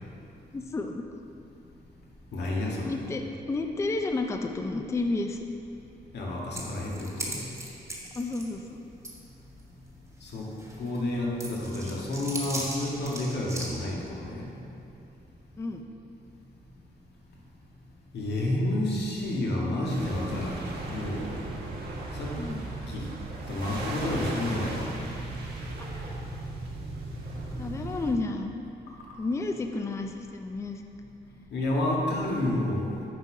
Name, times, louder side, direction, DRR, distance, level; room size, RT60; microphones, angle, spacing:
voice 1, 0.5-1.0 2.8-3.2 3.5-5.4 8.2-8.8 15.6-15.8 22.4-22.7 25.8-25.9 27.6-28.5 29.2-30.8, left 3 dB, 15° left, 4 dB, 0.4 m, -31 dB
voice 2, 2.3-2.9 6.1-7.4 10.2-10.5 10.8-14.5 18.1-20.6 20.9-21.3 22.1-22.4 22.9-23.1 23.5-24.9 31.5-32.9, left 1 dB, 90° left, -3 dB, 1.6 m, -30 dB
sound 1, 6.5-8.5 9.0-9.1 9.6-9.7 10.3-11.0 11.4-13.7, right 1 dB, 15° right, 1.3 m, -37 dB
sound 2, 19.9-28.1, right 2 dB, 70° right, 1.5 m, -36 dB
9.3 x 4.5 x 5.7 m, 2.8 s
wide cardioid pair, 155°, 17 cm